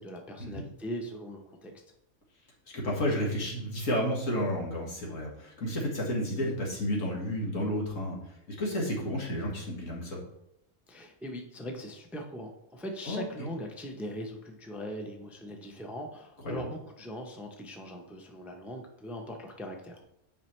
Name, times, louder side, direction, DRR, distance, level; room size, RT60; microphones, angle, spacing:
voice 1, 0.0-1.7 10.9-20.0, equal, ahead, 2 dB, 0.6 m, -40 dB
voice 2, 2.7-8.2 8.6-10.2 13.1-13.5 16.5-16.7, equal, 85° left, -3 dB, 2.1 m, -31 dB
9.0 x 5.0 x 3.2 m, 0.82 s
omnidirectional pair, 1.3 m